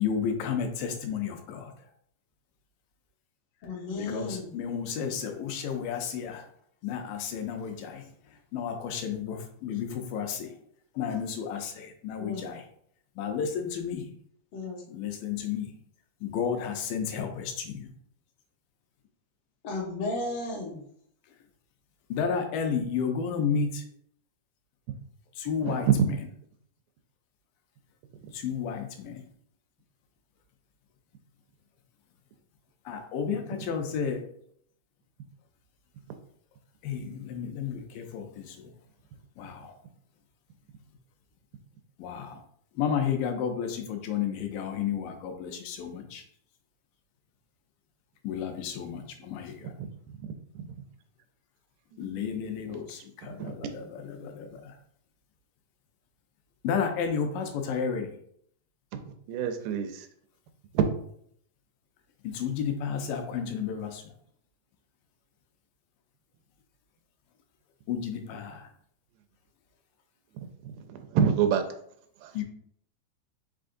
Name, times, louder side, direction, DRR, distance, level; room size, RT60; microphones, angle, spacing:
voice 1, 0.0-1.7 4.0-6.4 6.8-8.0 8.5-10.5 11.0-12.7 13.2-14.1 14.9-15.7 16.2-17.9 22.1-23.8 25.3-26.2 28.3-29.3 32.9-34.2 36.8-38.7 39.4-39.7 42.0-42.4 42.8-46.2 48.2-49.7 52.0-54.8 56.6-58.1 62.2-64.1 67.9-68.7 72.3-72.4, left 7 dB, 90° left, 4 dB, 2.3 m, -32 dB
voice 2, 3.6-4.5 12.2-12.5 14.5-14.8 19.6-20.8, left 2 dB, 55° left, -3 dB, 1.8 m, -34 dB
voice 3, 50.2-50.7 52.0-52.1 53.4-53.5 59.3-60.1 60.7-60.9 70.6-71.6 72.2-72.3, right 8 dB, 85° right, 7 dB, 2.1 m, -27 dB
5.4 x 3.7 x 2.5 m, 0.66 s
omnidirectional pair, 3.7 m